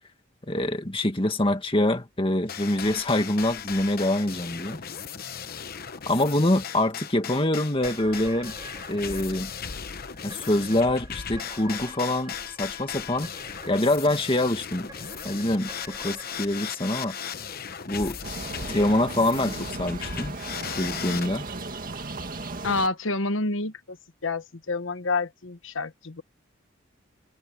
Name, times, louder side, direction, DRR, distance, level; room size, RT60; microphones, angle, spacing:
voice 1, 0.4-4.8 6.1-8.5 8.9-9.5 10.2-13.3 13.7-14.9 15.2-17.2 17.9-18.2 18.7-20.3 20.7-21.4, left 1 dB, 25° left, 2.0 m, -25 dB
sound 1, 2.5-21.3, left 7 dB, 50° left, 1.0 m, -37 dB
sound 2, 7.8-18.2, right 2 dB, 20° right, 3.9 m, -48 dB
sound 3, 18.2-22.9, right 2 dB, 45° right, 2.1 m, -36 dB
voice 2, 22.6-24.0 24.2-26.2, left 3 dB, 80° left, 1.2 m, -28 dB
head